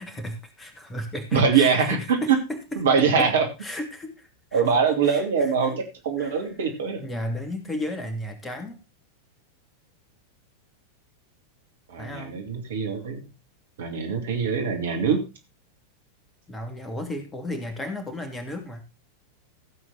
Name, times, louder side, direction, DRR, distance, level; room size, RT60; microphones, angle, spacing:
voice 1, 0.0-3.3 3.6-4.6 5.0-5.7 6.2-6.5 7.0-8.8 12.0-12.4 16.5-18.8, left 1 dB, 15° left, 6 dB, 2.7 m, -34 dB
voice 2, 1.3-2.4 2.8-3.4 4.5-7.0 11.9-13.2 13.8-15.2, right 6 dB, 60° right, 4 dB, 2.7 m, -23 dB
15.0 x 7.8 x 4.0 m, 0.26 s
figure-of-eight pair, 90°, 0 cm